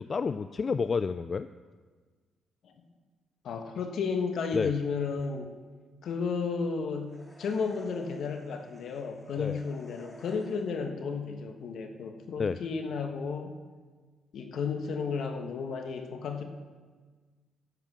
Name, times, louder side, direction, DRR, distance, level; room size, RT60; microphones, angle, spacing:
voice 1, 0.0-1.5 4.5-4.7 9.4-9.6 12.4-12.6, left 5 dB, 40° left, 12 dB, 0.3 m, -29 dB
voice 2, 3.4-5.5 6.0-13.5 14.3-16.4, left 5 dB, 65° left, 6 dB, 1.3 m, -33 dB
sound 1, 7.1-10.9, left 1 dB, 15° left, 1.8 m, -53 dB
12.0 x 7.5 x 6.1 m, 1.5 s
cardioid pair, 90°, 0 cm